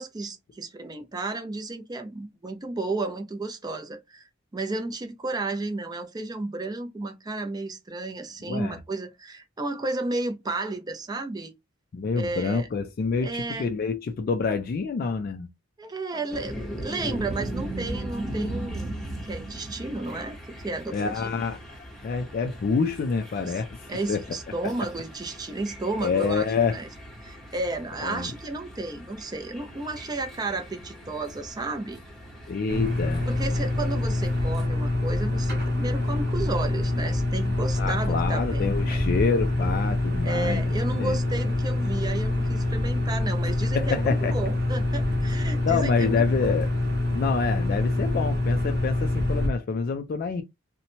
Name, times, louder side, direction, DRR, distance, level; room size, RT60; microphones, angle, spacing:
voice 1, 0.0-11.5 12.1-12.7 13.2-13.7 15.8-18.9 19.3-20.4 20.6-21.3 23.4-23.6 23.9-26.5 26.7-26.9 27.2-32.0 33.3-39.0 40.2-46.5, right 2 dB, 20° right, 0.4 m, -33 dB
voice 2, 11.9-15.5 20.9-21.6 22.0-23.8 24.1-24.2 26.0-26.7 28.0-28.3 32.5-33.2 37.8-40.6 40.9-41.2 43.7-44.3 45.6-46.7 47.1-50.4, left 5 dB, 50° left, 0.3 m, -27 dB
sound 1, 16.3-34.7, right 1 dB, ahead, 0.8 m, -39 dB
sound 2, 32.7-49.5, left 2 dB, 55° right, 0.9 m, -26 dB
2.8 x 2.1 x 2.7 m
head